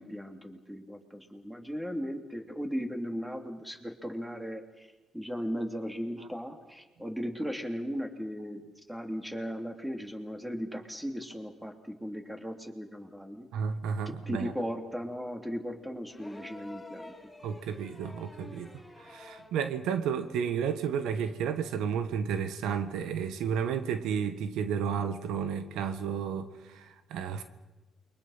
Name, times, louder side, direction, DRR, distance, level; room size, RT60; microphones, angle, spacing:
voice 1, 0.0-4.9 5.1-8.6 8.9-13.5 14.1-17.1, equal, 5° right, 3.1 m, -37 dB
voice 2, 13.5-14.5 17.4-18.7 19.0-27.4, right 7 dB, 90° right, 1.4 m, -32 dB
sound 1, 16.1-19.6 21.0-21.1, left 1 dB, 15° left, 6.1 m, -48 dB
28.5 x 24.0 x 5.8 m
cardioid pair, 90°, 0 cm